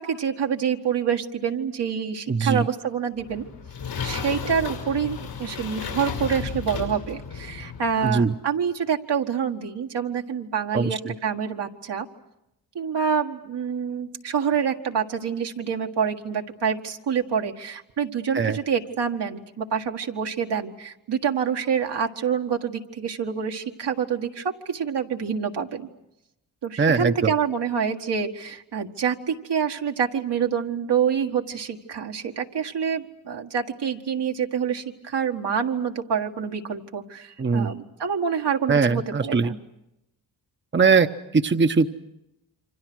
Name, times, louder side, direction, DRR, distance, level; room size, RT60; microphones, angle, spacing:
voice 1, 0.0-3.4 4.0-12.1 12.7-25.9 26.6-39.6, right 7 dB, 70° right, 3 dB, 1.8 m, -27 dB
voice 2, 2.3-2.7 8.0-8.3 10.7-11.1 18.3-18.6 26.8-27.3 37.4-37.7 38.7-39.5 40.7-41.1 41.3-41.9, right 5 dB, 25° right, 8 dB, 0.9 m, -21 dB
sound 1, 3.2-8.1, left 6 dB, 90° left, 5.7 m, -33 dB
28.5 x 25.0 x 6.3 m, 0.87 s
cardioid pair, 60°, 42 cm